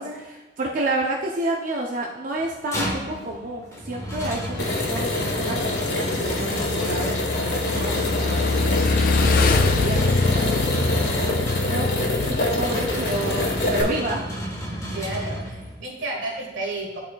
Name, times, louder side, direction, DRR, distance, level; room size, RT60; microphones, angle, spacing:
voice 1, 0.0-9.0 9.2-11.9 12.2-14.3, right 1 dB, 45° right, -1 dB, 0.5 m, -30 dB
sound 1, 2.4-15.9, equal, 15° left, 1.3 m, -32 dB
Motorcycle / Engine, 4.2-13.9, left 3 dB, 50° left, 0.4 m, -25 dB
sound 2, 4.6-13.8, left 2 dB, 65° left, 1.1 m, -26 dB
voice 2, 14.9-17.0, right 2 dB, 80° right, -1 dB, 1.4 m, -32 dB
11.5 x 4.2 x 2.3 m, 1.2 s
head